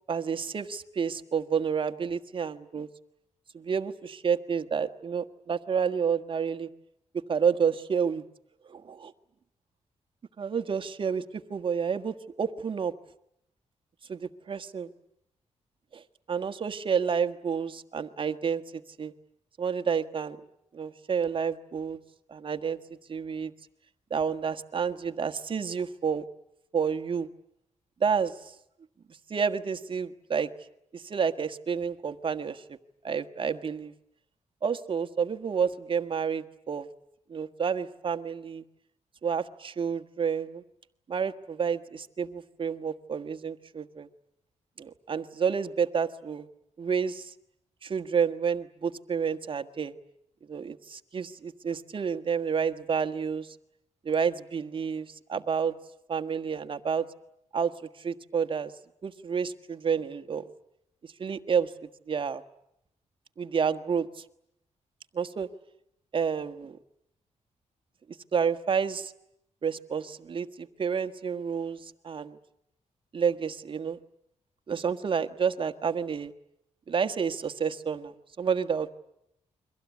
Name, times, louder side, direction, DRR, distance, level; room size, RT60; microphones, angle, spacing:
voice 1, 0.1-2.9 3.5-6.7 7.3-8.2 8.6-9.1 10.4-12.9 14.1-14.9 15.9-16.0 16.3-19.1 19.6-20.4 20.7-22.0 22.3-22.8 23.1-23.5 24.1-26.2 26.7-27.3 28.0-28.5 29.3-30.5 30.9-32.8 33.0-33.9 34.6-36.9 37.3-38.6 39.2-40.6 41.1-44.1 44.8-46.5 46.8-47.3 47.8-49.9 50.5-53.6 54.0-55.7 56.1-57.1 57.5-58.7 59.0-60.5 61.0-62.4 63.4-64.2 65.1-65.5 66.1-66.8 68.3-69.1 69.6-72.4 73.1-74.0 74.7-76.3 76.9-79.0, right 6 dB, 45° right, 9 dB, 1.5 m, -30 dB
29.5 x 23.5 x 8.4 m, 0.77 s
cardioid pair, 115°, 12 cm